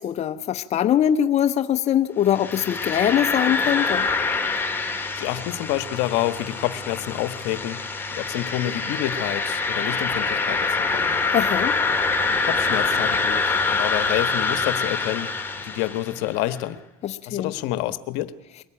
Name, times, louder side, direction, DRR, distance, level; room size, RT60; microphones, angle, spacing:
voice 1, 0.0-4.1 11.3-11.8 17.0-17.5, left 10 dB, 35° left, 7 dB, 0.9 m, -22 dB
sound 1, 2.3-16.3, left 4 dB, 10° left, 2.4 m, -25 dB
voice 2, 5.2-7.8 8.1-11.1 12.3-16.8 17.3-18.3, left 14 dB, 70° left, 12 dB, 1.3 m, -28 dB
22.5 x 17.5 x 8.9 m, 1.0 s
supercardioid pair, 120°, 19 cm